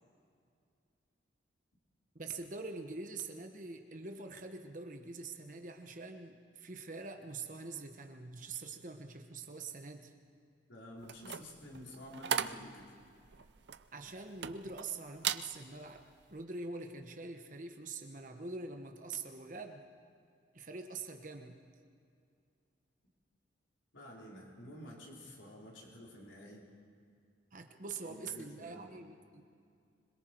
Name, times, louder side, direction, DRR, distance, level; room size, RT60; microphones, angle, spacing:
voice 1, 2.1-10.1 13.9-19.9 20.5-21.6 27.5-29.4, right 3 dB, 45° right, 5 dB, 1.1 m, -45 dB
voice 2, 10.7-12.9 23.9-26.6 27.8-28.9, left 1 dB, 80° left, -3 dB, 4.3 m, -50 dB
sound 1, 11.0-14.9 15.2-15.5 16.0-16.2, right 8 dB, 65° right, 0.6 m, -38 dB
26.0 x 22.0 x 4.6 m, 2.4 s
head